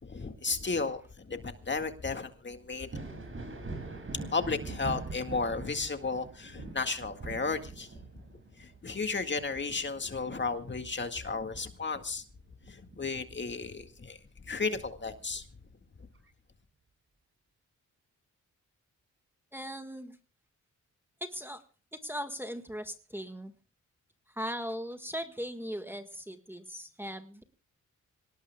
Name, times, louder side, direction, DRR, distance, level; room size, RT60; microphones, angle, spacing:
voice 1, 0.0-2.9 4.3-7.9 8.6-12.2 12.7-15.4, left 4 dB, 35° left, 2.0 m, -34 dB
Thunder, 2.7-12.1 12.5-13.7 15.2-15.3 16.1-16.3, right 3 dB, 40° right, 7.4 m, -43 dB
voice 2, 19.5-20.2 21.2-21.6 21.9-23.5 24.3-27.4, equal, 5° right, 1.6 m, -39 dB
26.0 x 18.5 x 2.3 m
cardioid pair, 85°, 32 cm